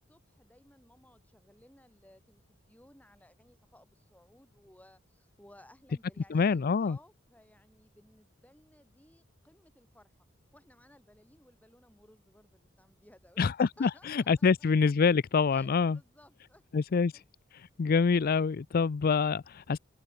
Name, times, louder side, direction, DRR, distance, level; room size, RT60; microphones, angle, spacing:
voice 1, 0.0-10.2 10.5-14.9 15.5-16.6 16.9-17.2, left 1 dB, 10° left, 7.2 m, -60 dB
voice 2, 6.3-7.0 13.4-16.0 16.7-17.1 17.8-19.8, left 5 dB, 50° left, 0.4 m, -26 dB
open air
head